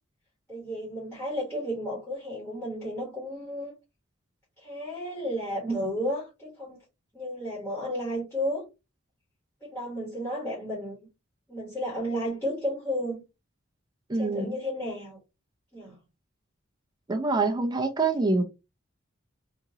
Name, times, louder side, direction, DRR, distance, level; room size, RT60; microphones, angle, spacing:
voice 1, 0.5-3.7 4.6-6.8 7.1-8.7 9.6-11.1 11.5-13.2 14.1-15.2 15.7-16.0, equal, 10° left, 1.2 m, -32 dB
voice 2, 14.1-14.6 17.1-18.4, right 3 dB, 20° right, 0.4 m, -25 dB
2.9 x 2.5 x 2.7 m
head